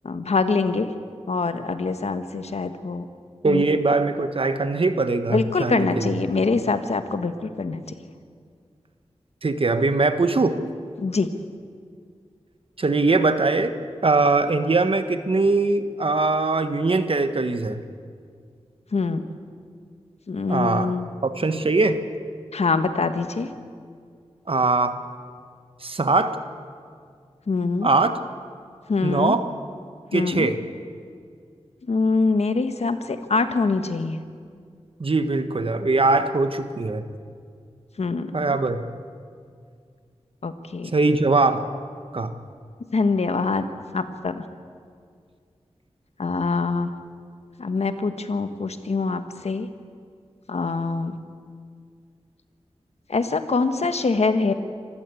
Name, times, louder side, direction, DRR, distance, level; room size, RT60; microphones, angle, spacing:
voice 1, 0.0-0.9 1.3-3.1 3.5-3.6 5.3-7.8 11.0-11.3 18.9-19.2 20.3-21.1 22.5-23.5 27.5-27.9 28.9-29.4 30.1-30.5 31.9-34.2 38.0-38.6 40.4-40.9 42.9-43.6 43.9-44.4 46.2-46.9 47.6-49.7 50.5-51.2 53.1-54.5, left 4 dB, 70° left, 9 dB, 1.4 m, -24 dB
voice 2, 3.4-6.1 9.4-10.6 12.8-13.8 14.0-17.8 20.5-20.9 21.2-22.0 24.5-25.0 25.8-26.4 27.8-28.1 29.0-29.4 30.1-30.6 35.0-37.1 38.3-38.8 40.9-41.6 42.1-42.3, right 3 dB, 55° right, 9 dB, 1.4 m, -21 dB
26.5 x 15.0 x 8.4 m, 2.2 s
wide cardioid pair, 60°, 11 cm